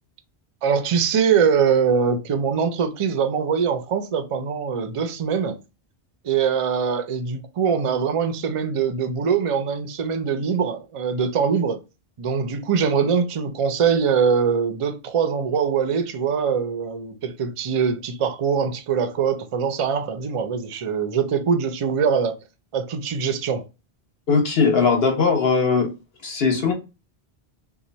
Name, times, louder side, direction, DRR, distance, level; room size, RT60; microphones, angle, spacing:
voice 1, 0.6-5.6 6.2-11.8 12.2-22.3 22.7-23.6, right 6 dB, 50° right, 0.4 m, -22 dB
voice 2, 24.3-25.9 26.2-26.7, left 5 dB, 65° left, 1.2 m, -19 dB
2.9 x 2.3 x 3.9 m
omnidirectional pair, 1.1 m